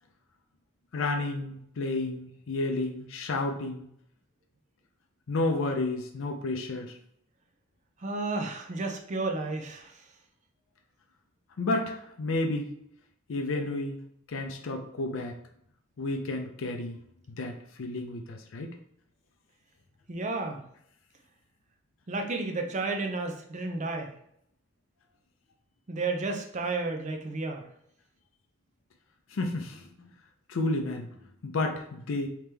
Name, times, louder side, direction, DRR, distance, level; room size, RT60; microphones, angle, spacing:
voice 1, 0.9-3.9 5.3-6.9 11.6-12.7 13.3-14.0 14.3-15.4 16.0-17.0 17.4-18.7 29.3-29.8 30.5-31.1 31.4-32.3, left 2 dB, 70° left, 3 dB, 0.5 m, -31 dB
voice 2, 8.0-9.9 20.1-20.6 22.1-24.1 25.9-27.6, right 3 dB, 35° right, 4 dB, 0.5 m, -32 dB
3.4 x 2.9 x 3.3 m, 0.70 s
head